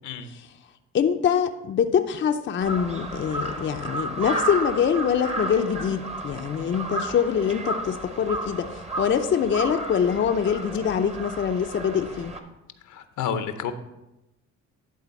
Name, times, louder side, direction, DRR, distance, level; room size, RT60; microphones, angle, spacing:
voice 1, 0.9-8.7 9.0-12.3, left 7 dB, 40° left, 6 dB, 0.6 m, -24 dB
Crow, 2.6-12.4, right 1 dB, 20° right, 1.0 m, -33 dB
voice 2, 12.8-13.7, left 7 dB, 75° left, 9 dB, 0.8 m, -30 dB
11.0 x 3.9 x 5.2 m, 0.95 s
cardioid pair, 90°, 30 cm